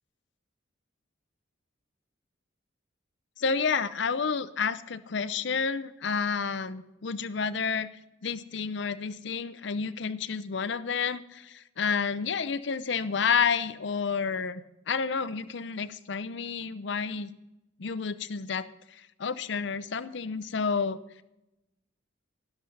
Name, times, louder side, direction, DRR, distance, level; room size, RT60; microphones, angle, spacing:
voice 1, 3.4-7.9 8.2-17.3 17.8-18.7 19.2-21.0, left 5 dB, 60° left, 14 dB, 0.6 m, -30 dB
12.0 x 12.0 x 3.9 m, 0.93 s
head